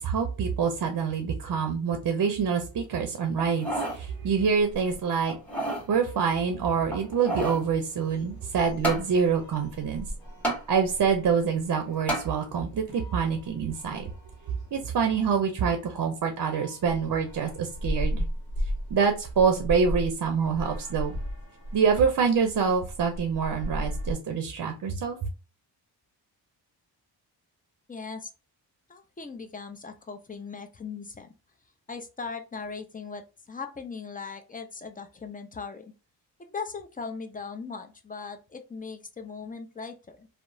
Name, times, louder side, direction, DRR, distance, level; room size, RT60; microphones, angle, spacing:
voice 1, 0.0-3.7 3.9-5.4 5.9-10.1 10.7-14.1 14.7-18.3 18.9-21.2 21.7-25.2, right 6 dB, 50° right, 6 dB, 0.6 m, -26 dB
sound 1, 3.4-4.0 4.5-4.6 5.3-5.9 6.9-7.7 8.8-9.1 10.4-10.6 12.1-12.3 12.9-13.0, right 1 dB, 5° left, 1.3 m, -30 dB
sound 2, 4.5-24.1, equal, 55° left, 1.1 m, -38 dB
voice 2, 27.9-28.3 28.9-31.3 31.9-35.9 36.4-40.3, left 5 dB, 20° left, 6 dB, 0.4 m, -39 dB
2.8 x 2.0 x 2.6 m, 0.32 s
cardioid pair, 55°, 45 cm